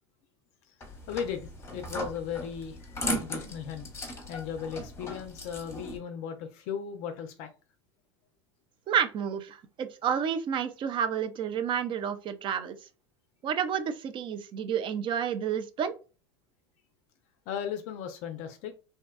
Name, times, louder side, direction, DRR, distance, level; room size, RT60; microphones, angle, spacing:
voice 1, 0.7-4.0 4.3-7.5 17.5-18.7, left 7 dB, 55° left, 0.4 m, -37 dB
sound 1, 0.8-6.0, left 1 dB, 20° left, 0.8 m, -37 dB
voice 2, 8.9-12.7 13.4-16.0, right 8 dB, 35° right, 0.4 m, -30 dB
2.6 x 2.2 x 2.2 m
hypercardioid pair, 90°, 14 cm